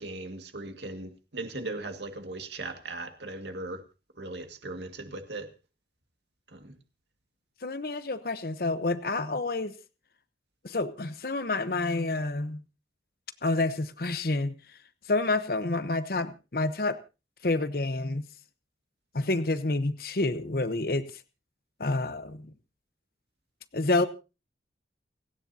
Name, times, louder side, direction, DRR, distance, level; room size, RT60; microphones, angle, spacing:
voice 1, 0.0-3.8 4.2-5.5 6.5-6.7, right 2 dB, 75° right, 1.9 m, -38 dB
voice 2, 7.6-9.7 10.6-12.6 13.4-14.5 15.1-17.0 17.4-18.2 19.1-21.0 21.8-22.5 23.7-24.1, left 2 dB, 55° left, 0.9 m, -28 dB
29.5 x 9.9 x 2.8 m
head